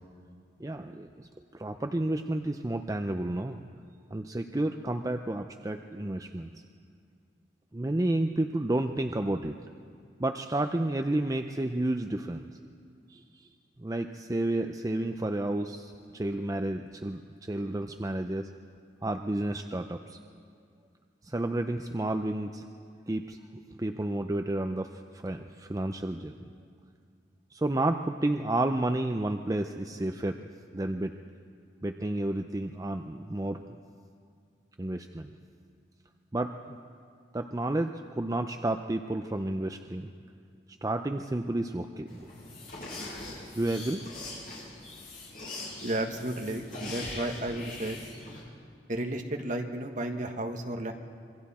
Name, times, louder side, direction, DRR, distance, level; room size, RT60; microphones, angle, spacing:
voice 1, 0.6-3.6 4.1-6.6 7.7-9.6 10.2-12.5 13.1-13.5 13.8-18.5 19.0-20.2 21.2-22.6 23.1-23.4 23.8-26.3 27.5-30.4 30.7-31.1 31.8-33.6 34.8-35.3 36.3-36.8 37.3-40.1 40.8-42.3 43.6-44.0, right 1 dB, 20° right, 5 dB, 0.5 m, -31 dB
sound 1, 42.1-48.4, left 2 dB, 50° left, 7.2 m, -42 dB
voice 2, 45.8-48.0 48.9-50.9, right 1 dB, 45° right, 4 dB, 1.4 m, -33 dB
26.5 x 23.0 x 4.3 m, 2.2 s
head